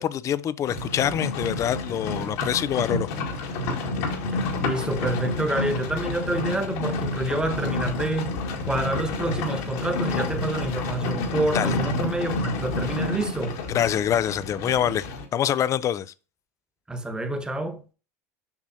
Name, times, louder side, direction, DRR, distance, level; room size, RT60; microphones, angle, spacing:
voice 1, 0.0-3.1 11.5-11.8 13.7-16.1, left 10 dB, 40° left, 0.5 m, -25 dB
Livestock farm animals working animals, 0.7-15.2, left 3 dB, 70° left, 1.8 m, -29 dB
voice 2, 4.6-8.4 8.7-13.6 16.9-17.8, right 2 dB, 10° right, 1.3 m, -28 dB
7.2 x 6.0 x 2.7 m
hypercardioid pair, 85°, 8 cm